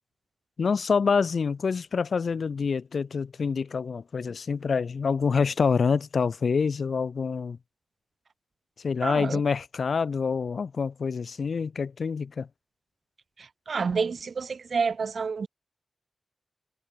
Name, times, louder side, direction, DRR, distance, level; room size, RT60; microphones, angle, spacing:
voice 1, 0.6-7.6 8.8-12.5, left 5 dB, 70° left, 1.2 m, -26 dB
voice 2, 9.0-9.4 13.4-15.5, right 5 dB, 65° right, 0.7 m, -29 dB
wide cardioid pair, 120°, 0 cm